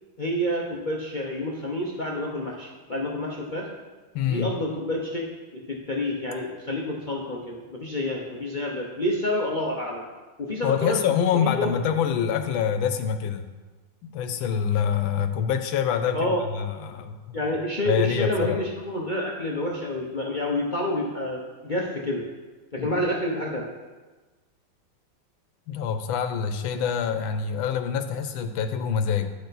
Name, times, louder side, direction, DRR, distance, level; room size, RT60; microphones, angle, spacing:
voice 1, 0.2-3.7 4.2-10.1 10.4-11.0 11.4-11.7 16.1-16.4 17.3-22.3 22.7-23.7, left 1 dB, 50° left, -2 dB, 0.5 m, -28 dB
voice 2, 4.1-4.5 10.6-13.5 14.0-17.4 17.9-18.6 22.8-22.9 25.7-29.3, left 7 dB, 80° left, 8 dB, 1.5 m, -26 dB
10.5 x 6.7 x 4.1 m, 1.3 s
omnidirectional pair, 2.2 m